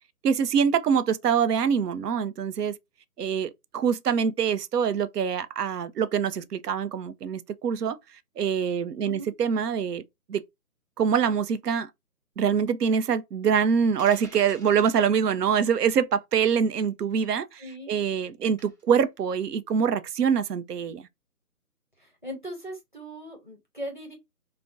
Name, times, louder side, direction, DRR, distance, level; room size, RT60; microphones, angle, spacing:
voice 1, 0.2-2.7 3.2-8.0 8.4-10.0 10.3-10.4 11.0-11.9 12.4-21.0, right 7 dB, 80° right, 0.5 m, -25 dB
voice 2, 9.0-9.3 17.6-17.9 22.0-24.1, equal, 30° left, 0.7 m, -39 dB
sound 1, 14.0-15.0 16.6-16.8 18.6-18.9, right 2 dB, 30° right, 1.1 m, -48 dB
2.5 x 2.1 x 3.4 m
hypercardioid pair, 180°, 47 cm